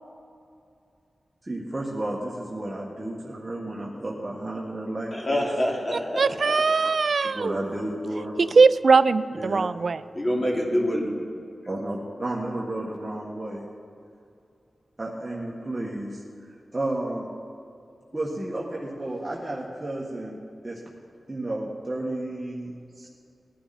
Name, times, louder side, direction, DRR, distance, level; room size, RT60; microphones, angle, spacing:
voice 1, 1.4-5.4 7.3-8.3 9.3-9.7 11.7-13.6 15.0-16.2 16.7-17.3 18.1-20.4 20.6-20.8 21.3-23.1, right 1 dB, 25° right, -4 dB, 1.7 m, -32 dB
voice 2, 5.1-6.6 10.1-11.1, left 1 dB, 35° left, -2 dB, 2.9 m, -26 dB
voice 3, 6.2-7.5 8.6-10.0, right 4 dB, 65° right, 14 dB, 0.4 m, -20 dB
18.5 x 11.0 x 4.3 m, 2.5 s
wide cardioid pair, 85°, 0 cm